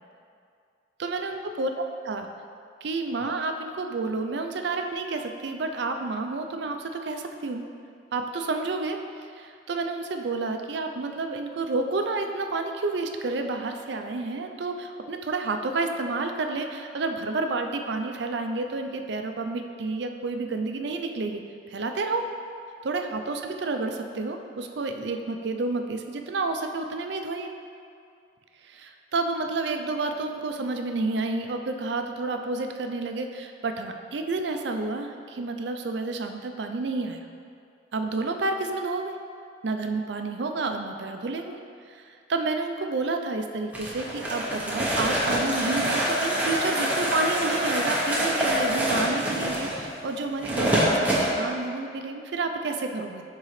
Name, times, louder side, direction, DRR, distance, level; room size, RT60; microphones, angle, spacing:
voice 1, 1.0-2.3 2.8-7.7 8.1-21.4 21.7-22.3 22.8-27.5 28.6-37.2 37.9-39.2 39.6-41.6 41.9-53.2, right 3 dB, 65° right, 5 dB, 0.4 m, -30 dB
sound 1, 43.7-51.3, equal, 10° right, 0.8 m, -26 dB
9.7 x 3.7 x 3.2 m, 2.4 s
head